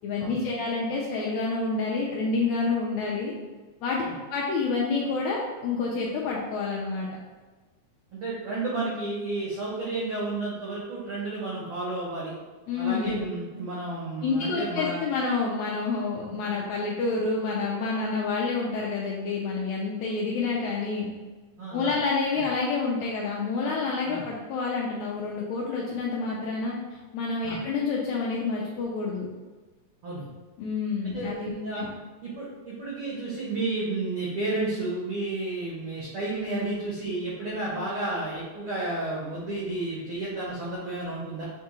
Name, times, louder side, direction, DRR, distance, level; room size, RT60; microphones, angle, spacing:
voice 1, 0.0-3.3 3.8-7.1 12.7-13.2 14.2-21.1 21.7-29.3 30.6-31.9, left 4 dB, 85° left, -3 dB, 1.6 m, -28 dB
voice 2, 8.1-12.3 12.8-15.0 21.6-21.9 24.0-24.2 27.4-27.6 30.0-30.3 31.0-31.9 32.2-41.4, right 2 dB, 90° right, -6 dB, 1.1 m, -32 dB
6.5 x 2.3 x 3.0 m, 1.3 s
omnidirectional pair, 3.5 m